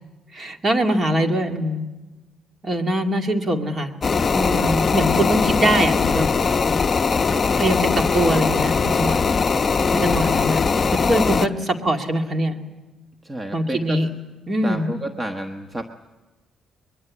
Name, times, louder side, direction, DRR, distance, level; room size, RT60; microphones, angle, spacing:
voice 1, 0.3-1.8 2.6-3.9 4.3-6.3 7.6-9.2 9.9-10.6 10.9-12.6 13.5-14.1 14.5-14.9, right 1 dB, 35° right, 4 dB, 2.3 m, -22 dB
sound 1, 4.0-11.5, left 5 dB, 30° left, 0.7 m, -20 dB
voice 2, 11.3-11.6 13.2-14.0 14.6-15.9, right 1 dB, 15° right, 5 dB, 1.2 m, -30 dB
23.5 x 22.5 x 8.5 m, 1.2 s
cardioid pair, 120°, 0 cm